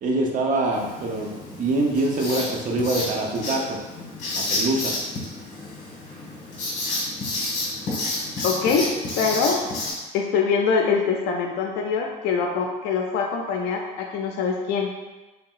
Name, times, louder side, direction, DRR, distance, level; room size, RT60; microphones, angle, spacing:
voice 1, 0.0-3.8 4.3-4.9, right 2 dB, 50° right, 0 dB, 0.6 m, -24 dB
Writing, 0.7-9.9, left 2 dB, 45° left, 1.2 m, -30 dB
voice 2, 8.4-9.6 10.1-14.9, left 5 dB, 85° left, 1 dB, 0.4 m, -24 dB
3.3 x 2.8 x 2.4 m, 1.1 s
cardioid pair, 110°, 17 cm